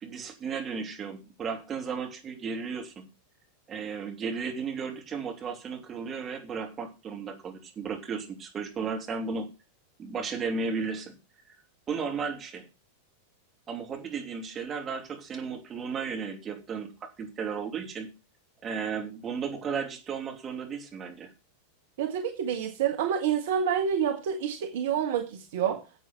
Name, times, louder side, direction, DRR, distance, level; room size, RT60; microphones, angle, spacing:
voice 1, 0.0-3.1 3.7-9.5 10.0-11.2 11.9-12.7 13.7-18.1 18.6-21.3, right 5 dB, 25° right, 3 dB, 2.9 m, -34 dB
voice 2, 22.0-25.8, right 8 dB, 55° right, 5 dB, 1.6 m, -28 dB
10.0 x 8.1 x 5.8 m, 0.29 s
figure-of-eight pair, 90°, 0 cm